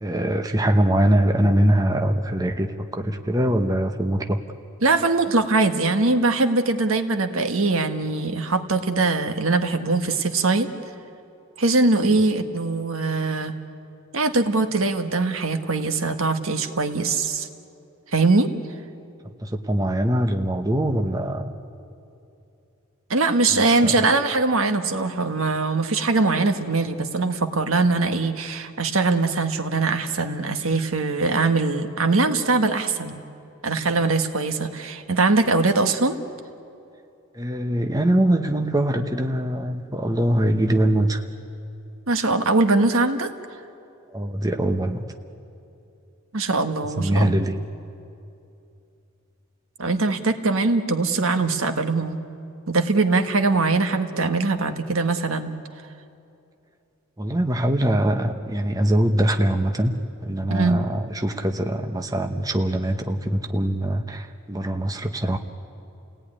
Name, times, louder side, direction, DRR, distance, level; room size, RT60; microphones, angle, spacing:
voice 1, 0.0-4.4 12.1-12.2 19.4-21.5 23.5-24.0 37.3-41.2 44.1-45.0 47.0-47.6 57.2-65.4, right 1 dB, 20° right, 6 dB, 0.9 m, -23 dB
voice 2, 4.8-10.7 11.6-13.6 14.1-17.5 18.1-18.5 23.1-33.2 33.6-36.2 42.1-43.3 46.3-47.4 49.8-52.2 52.7-55.5 60.5-60.8, right 3 dB, 80° right, 7 dB, 1.5 m, -22 dB
29.5 x 17.5 x 9.9 m, 2.7 s
head